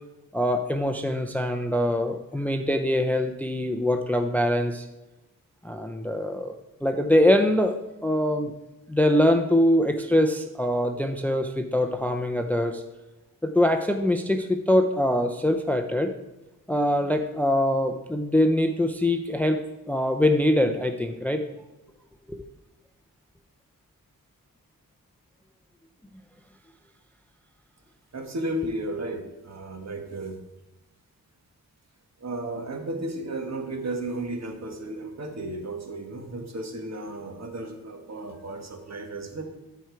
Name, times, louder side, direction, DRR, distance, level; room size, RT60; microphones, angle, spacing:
voice 1, 0.3-4.9 5.6-7.8 8.0-8.5 8.9-12.8 13.4-16.1 16.7-19.6 19.9-21.4 22.3-22.4, left 1 dB, 5° left, 6 dB, 0.5 m, -23 dB
voice 2, 28.1-30.4 32.2-39.4, right 1 dB, 50° right, 4 dB, 1.5 m, -34 dB
13.0 x 4.5 x 4.6 m, 1.0 s
wide cardioid pair, 95°, 34 cm